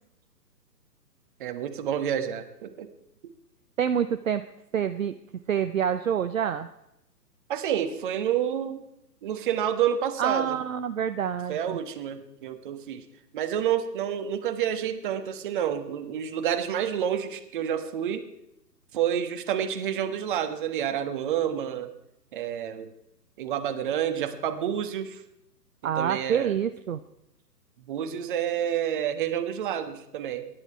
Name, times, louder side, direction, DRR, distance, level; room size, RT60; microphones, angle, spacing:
voice 1, 1.4-2.9 7.5-8.8 9.2-10.6 11.5-13.0 13.3-18.3 18.9-21.9 22.3-22.9 23.4-25.2 25.8-26.5 27.9-30.5, right 9 dB, 30° right, 8 dB, 1.3 m, -29 dB
voice 2, 3.8-4.4 4.7-5.1 5.5-6.7 10.2-11.8 25.8-27.0, right 8 dB, 55° right, 9 dB, 0.7 m, -27 dB
22.5 x 11.0 x 4.6 m, 0.84 s
figure-of-eight pair, 130°, 49 cm